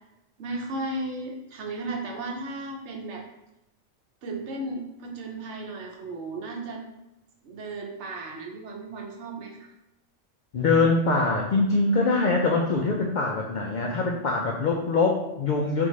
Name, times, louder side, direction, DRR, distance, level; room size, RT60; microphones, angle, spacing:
voice 1, 0.4-3.2 4.2-6.8 7.4-9.7, right 2 dB, 65° right, 0 dB, 1.0 m, -35 dB
voice 2, 10.5-15.9, left 3 dB, 80° left, 0 dB, 0.4 m, -23 dB
3.9 x 3.4 x 3.1 m, 0.89 s
omnidirectional pair, 1.3 m